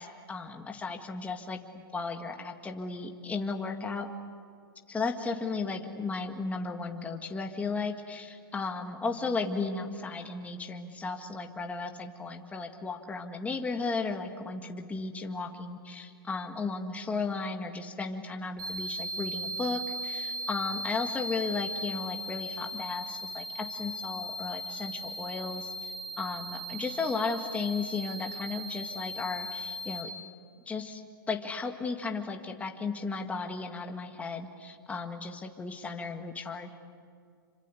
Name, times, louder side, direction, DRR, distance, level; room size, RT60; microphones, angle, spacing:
voice 1, 0.0-1.6 1.9-4.1 4.9-30.1 30.7-31.0 31.3-36.7, left 4 dB, 10° left, 3 dB, 1.9 m, -35 dB
sound 1, 18.6-30.0, right 1 dB, 60° right, 7.4 m, -38 dB
27.5 x 25.0 x 8.4 m, 2.2 s
hypercardioid pair, 125°, 12 cm